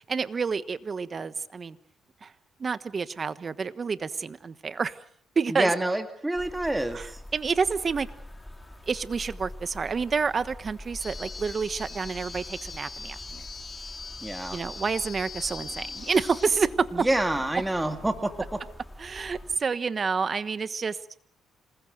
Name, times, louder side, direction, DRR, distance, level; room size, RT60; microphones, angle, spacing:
voice 1, 0.1-1.8 2.2-2.3 2.6-5.0 5.3-5.7 6.9-7.1 7.3-8.1 8.9-13.4 14.5-17.1 19.0-21.0, right 5 dB, 40° right, 14 dB, 1.2 m, -28 dB
voice 2, 5.5-7.2 14.2-14.6 16.9-18.6, right 1 dB, 10° right, 7 dB, 2.2 m, -27 dB
sound 1, 6.3-19.6, left 1 dB, 10° left, 3.7 m, -45 dB
sound 2, 11.0-16.5, left 4 dB, 30° left, 3.6 m, -41 dB
sound 3, 15.5-18.5, left 7 dB, 65° left, 6.4 m, -52 dB
27.0 x 20.5 x 6.6 m, 0.65 s
cardioid pair, 90°, 0 cm